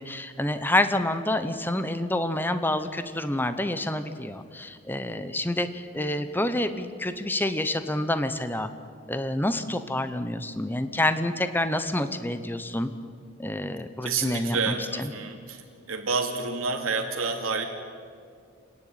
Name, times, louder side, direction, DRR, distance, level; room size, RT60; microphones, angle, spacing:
voice 1, 0.0-8.7 9.1-12.9 13.4-15.1, left 1 dB, 10° left, 10 dB, 0.9 m, -28 dB
voice 2, 14.0-15.6 15.9-17.6, right 4 dB, 85° right, 2 dB, 2.7 m, -29 dB
29.0 x 10.5 x 8.9 m, 2.2 s
head